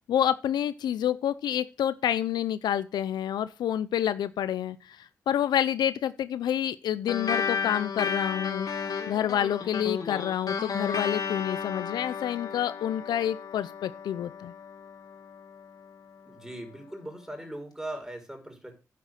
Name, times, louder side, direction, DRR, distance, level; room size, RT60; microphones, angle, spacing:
voice 1, 0.1-8.7 9.1-14.5, left 10 dB, 80° left, 0.6 m, -28 dB
sound 1, 7.1-15.9, left 6 dB, 60° left, 2.4 m, -33 dB
voice 2, 16.3-18.7, right 1 dB, 5° right, 5.3 m, -39 dB
9.8 x 6.9 x 6.4 m
supercardioid pair, 45°, 7 cm